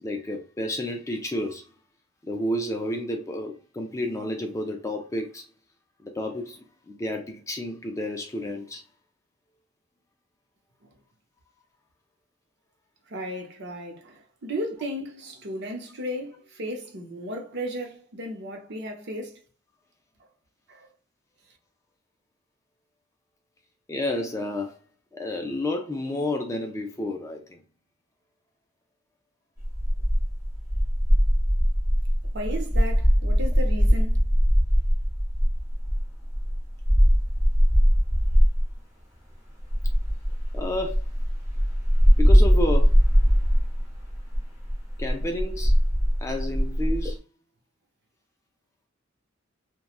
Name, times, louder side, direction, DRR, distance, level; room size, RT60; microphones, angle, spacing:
voice 1, 0.0-1.6 2.2-5.4 6.0-8.8 23.9-24.8 25.1-27.6 40.5-41.0 42.2-43.0 45.0-45.8 46.2-47.2, left 1 dB, 15° left, 0.3 m, -30 dB
voice 2, 13.1-19.4 20.7-20.9 32.3-34.2, equal, 55° right, 0.7 m, -35 dB
sound 1, 29.6-38.7 39.6-47.1, equal, 15° right, 0.9 m, -21 dB
2.9 x 2.2 x 2.4 m
head